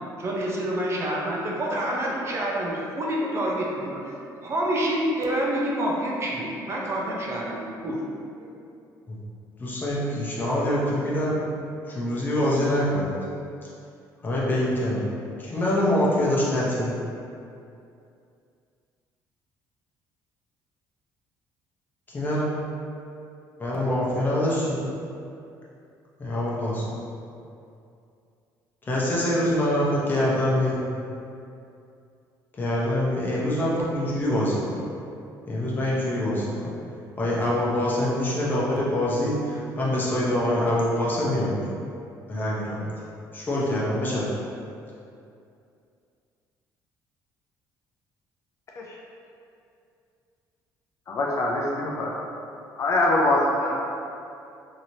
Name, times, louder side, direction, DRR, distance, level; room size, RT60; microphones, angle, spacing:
voice 1, 0.2-8.5, right 1 dB, 35° right, -3 dB, 0.5 m, -28 dB
voice 2, 9.6-11.4 11.9-13.1 14.2-15.0 15.4-16.9 22.1-22.5 23.6-24.8 26.2-26.9 28.9-31.0 32.6-34.8 35.5-36.7 37.2-41.6 42.3-42.9 43.3-44.3, left 1 dB, 25° left, -6 dB, 0.7 m, -25 dB
voice 3, 51.1-52.1 52.8-53.8, left 1 dB, 40° left, -3 dB, 0.3 m, -23 dB
3.0 x 2.8 x 2.7 m, 2.6 s
cardioid pair, 130°, 8 cm